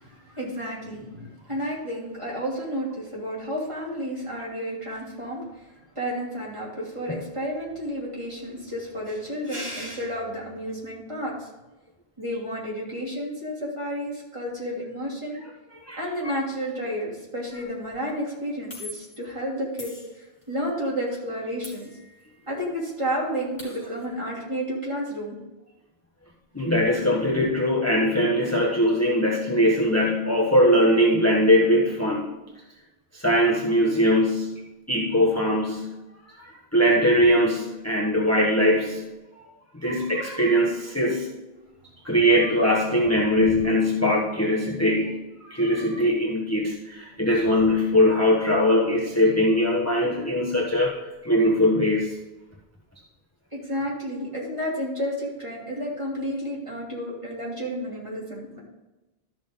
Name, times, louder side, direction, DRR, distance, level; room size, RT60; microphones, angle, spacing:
voice 1, 0.0-5.7 5.9-11.5 12.2-15.4 16.0-21.9 22.5-25.4 53.5-58.6, equal, 30° right, -5 dB, 3.0 m, -31 dB
sound 1, 17.5-17.7 18.7-19.3 19.8-20.6 21.6-22.5 22.8-22.9 23.2-24.1, left 1 dB, 45° left, 4.0 m, -43 dB
voice 2, 26.5-32.3 33.1-36.0 36.4-39.1 39.4-39.5 39.8-41.3 42.0-51.0 51.2-52.1, equal, 15° left, -3 dB, 1.3 m, -21 dB
13.0 x 6.2 x 3.7 m, 1.1 s
omnidirectional pair, 1.0 m